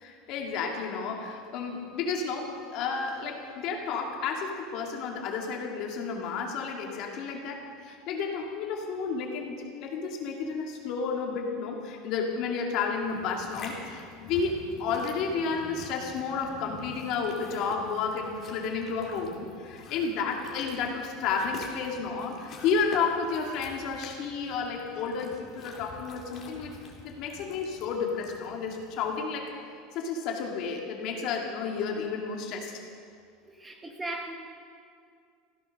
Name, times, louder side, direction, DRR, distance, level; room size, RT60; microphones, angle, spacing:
voice 1, 0.0-26.7 27.0-29.6 29.9-32.7, left 5 dB, 45° left, 1 dB, 2.3 m, -31 dB
sound 1, 13.0-29.2, left 4 dB, 30° left, 2.6 m, -47 dB
voice 2, 33.5-34.3, right 2 dB, 10° right, 3 dB, 0.9 m, -37 dB
15.5 x 14.0 x 6.5 m, 2.2 s
supercardioid pair, 170°, 0 cm